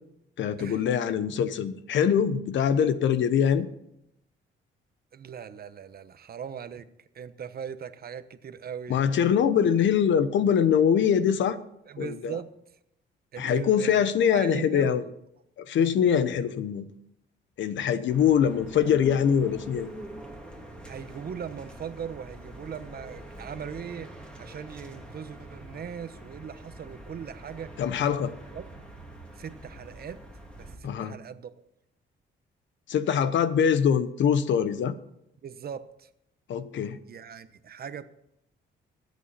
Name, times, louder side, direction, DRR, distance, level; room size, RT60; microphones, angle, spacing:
voice 1, 0.4-3.7 8.9-11.6 12.0-12.4 13.4-15.0 15.6-16.9 17.6-19.9 27.8-28.3 30.8-31.1 32.9-34.9 36.5-37.0, left 8 dB, 70° left, 13 dB, 1.1 m, -23 dB
voice 2, 5.1-6.8 7.1-9.0 11.9-12.5 13.3-14.1 14.3-15.1 20.8-27.7 28.5-28.6 29.4-30.2 30.6-31.7 35.4-36.1 37.1-38.0, right 7 dB, 50° right, 12 dB, 1.0 m, -39 dB
sound 1, 18.1-30.8, right 1 dB, 5° left, 2.8 m, -45 dB
24.0 x 8.3 x 4.3 m, 0.80 s
cardioid pair, 90°, 20 cm